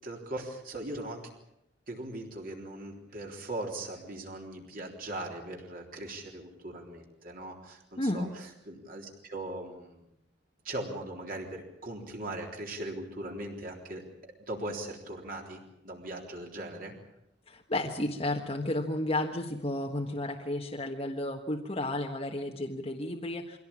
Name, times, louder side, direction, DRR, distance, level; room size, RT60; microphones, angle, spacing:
voice 1, 0.0-1.3 1.9-10.0 10.6-16.9, right 1 dB, 45° right, 0 dB, 3.7 m, -40 dB
voice 2, 8.0-8.3 17.5-23.6, left 1 dB, 30° left, 2 dB, 1.5 m, -32 dB
24.0 x 17.0 x 8.8 m, 0.81 s
head